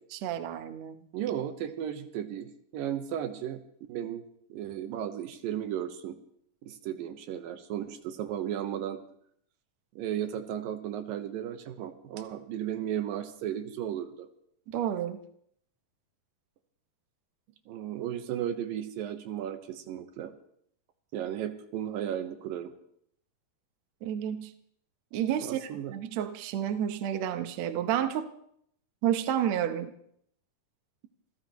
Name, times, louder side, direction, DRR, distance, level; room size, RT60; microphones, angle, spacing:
voice 1, 0.1-1.0 14.7-15.2 24.0-24.5 25.1-28.3 29.0-29.9, right 10 dB, 65° right, 9 dB, 1.9 m, -30 dB
voice 2, 1.1-3.6 3.9-4.2 4.5-6.2 6.6-9.0 10.0-14.3 17.7-20.3 21.1-22.7 25.4-25.9, right 10 dB, 85° right, 8 dB, 2.8 m, -35 dB
27.5 x 15.5 x 3.1 m, 0.68 s
omnidirectional pair, 4.0 m